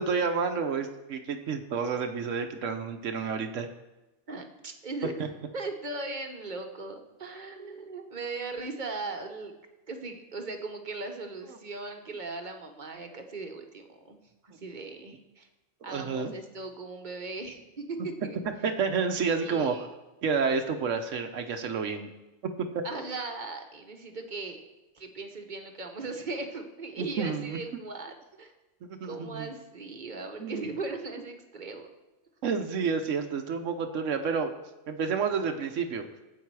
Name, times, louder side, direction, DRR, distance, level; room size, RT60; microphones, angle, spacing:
voice 1, 0.0-3.7 15.9-16.3 18.6-19.9 20.2-22.1 22.6-22.8 27.0-27.6 28.8-29.5 30.4-30.7 32.4-34.5 34.9-36.1, right 5 dB, 80° right, 6 dB, 1.2 m, -30 dB
voice 2, 4.3-9.5 9.9-14.2 14.4-15.5 15.8-18.4 19.4-19.9 22.8-24.6 24.9-28.5 29.0-31.9, right 3 dB, 40° right, 5 dB, 1.2 m, -38 dB
13.0 x 8.2 x 4.7 m, 1.0 s
omnidirectional pair, 1.3 m